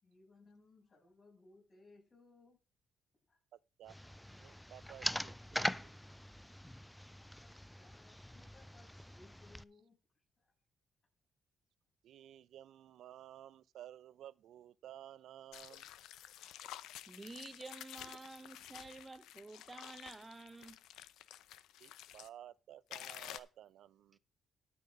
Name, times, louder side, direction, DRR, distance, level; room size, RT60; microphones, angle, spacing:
voice 1, 0.0-2.6 3.3-3.4 7.2-9.9 10.4-10.5, left 3 dB, 40° left, 6.6 m, -64 dB
voice 2, 3.5-5.9 12.0-15.9 21.8-24.2, right 11 dB, 75° right, 0.4 m, -55 dB
sound 1, 3.9-9.6, left 1 dB, 5° left, 0.4 m, -42 dB
sound 2, 15.5-22.3 22.9-23.4, left 12 dB, 85° left, 0.7 m, -51 dB
voice 3, 17.1-20.8, right 3 dB, 20° right, 0.8 m, -50 dB
12.5 x 5.9 x 5.2 m
cardioid pair, 90°, 0 cm